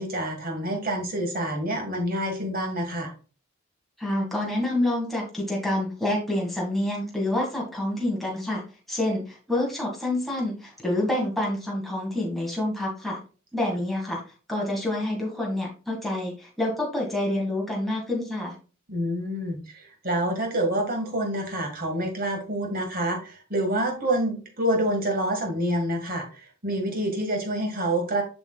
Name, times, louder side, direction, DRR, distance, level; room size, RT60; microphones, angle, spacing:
voice 1, 0.0-3.1 18.9-28.2, right 1 dB, 40° right, 2 dB, 1.7 m, -27 dB
voice 2, 4.0-8.6 8.9-9.2 9.5-13.2 13.5-14.2 14.5-18.5, left 1 dB, ahead, -3 dB, 1.9 m, -27 dB
7.5 x 6.0 x 2.3 m, 0.35 s
head